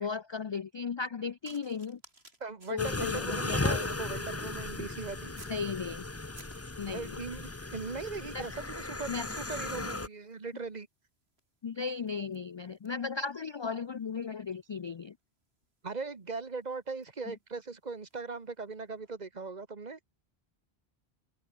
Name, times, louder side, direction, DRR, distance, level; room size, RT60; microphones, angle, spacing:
voice 1, 0.0-2.0 2.7-3.9 5.5-6.0 6.8-7.2 8.3-8.4 9.1-9.3 11.6-15.1, left 5 dB, 50° left, 0.3 m, -36 dB
sound 1, 1.4-5.7 6.1-7.3 8.1-8.4 8.6-18.3 19.0-19.2, right 2 dB, 85° right, 6.1 m, -61 dB
voice 2, 2.4-5.3 6.9-10.9 15.8-20.0, right 4 dB, 45° right, 1.5 m, -39 dB
sound 2, 2.8-10.1, left 2 dB, 15° left, 0.7 m, -36 dB
omnidirectional pair, 1.0 m